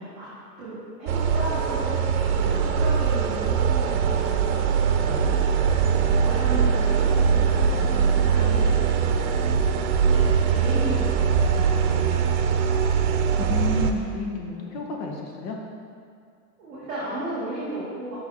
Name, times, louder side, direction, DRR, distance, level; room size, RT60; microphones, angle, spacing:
voice 1, 0.0-4.4 5.8-8.8 9.7-12.5 14.7-14.8 16.6-18.1, right 1 dB, 5° right, -23 dB, 0.3 m, -35 dB
sound 1, 1.1-13.9, right 6 dB, 65° right, 0.6 m, -22 dB
voice 2, 5.0-5.4 13.5-15.6, left 3 dB, 80° left, 1 dB, 1.2 m, -31 dB
5.8 x 4.8 x 4.2 m, 2.2 s
supercardioid pair, 175°, 48 cm